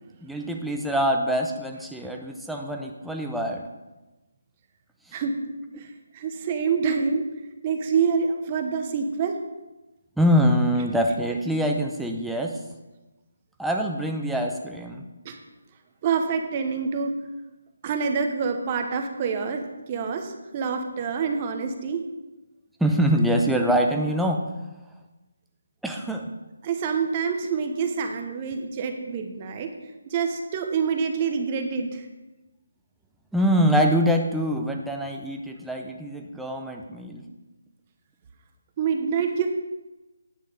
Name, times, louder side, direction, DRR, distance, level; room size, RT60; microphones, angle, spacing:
voice 1, 0.2-3.7 10.2-12.6 13.6-15.0 22.8-24.4 25.8-26.3 33.3-37.3, equal, ahead, 1 dB, 0.6 m, -24 dB
voice 2, 5.7-7.2 7.6-9.4 15.2-15.4 16.0-17.1 17.8-22.0 26.6-29.7 30.1-32.1 38.8-39.5, right 6 dB, 25° right, 5 dB, 0.9 m, -26 dB
9.5 x 6.3 x 4.9 m, 1.1 s
figure-of-eight pair, 165°, 0 cm